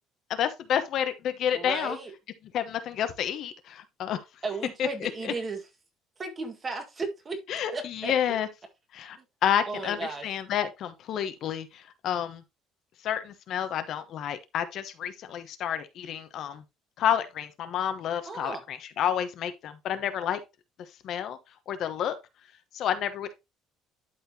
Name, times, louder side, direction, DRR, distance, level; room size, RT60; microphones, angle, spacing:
voice 1, 0.3-2.0 2.5-4.2 4.8-5.3 7.5-8.5 8.9-9.2 9.4-11.7 12.0-12.4 13.0-16.6 17.0-20.4 21.0-21.4 21.7-22.2 22.7-23.3, left 9 dB, 55° left, 1.0 m, -29 dB
voice 2, 1.5-2.1 4.4-5.6 6.2-7.4 7.7-8.1 9.7-10.3 18.3-18.6, right 3 dB, 25° right, 1.7 m, -34 dB
12.0 x 4.4 x 2.8 m
cardioid pair, 135°, 0 cm